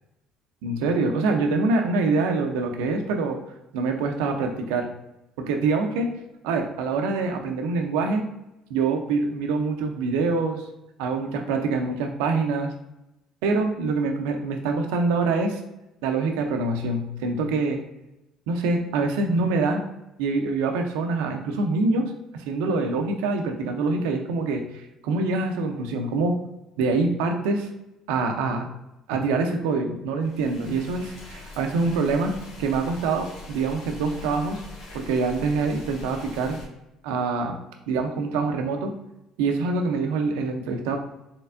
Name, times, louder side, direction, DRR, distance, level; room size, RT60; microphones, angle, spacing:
voice 1, 0.6-3.4 3.7-4.9 5.4-6.1 6.4-8.2 8.7-10.6 11.0-12.7 13.4-15.6 16.0-17.8 18.5-19.8 20.2-26.3 26.8-27.7 28.1-28.7 29.1-32.3 32.6-34.6 34.9-36.6 37.0-37.5 37.9-38.9 39.4-41.0, right 3 dB, 85° right, 4 dB, 0.6 m, -25 dB
sound 1, 30.2-36.7, left 3 dB, 80° left, 1.3 m, -42 dB
4.4 x 3.2 x 2.5 m, 0.93 s
supercardioid pair, 85°, 0 cm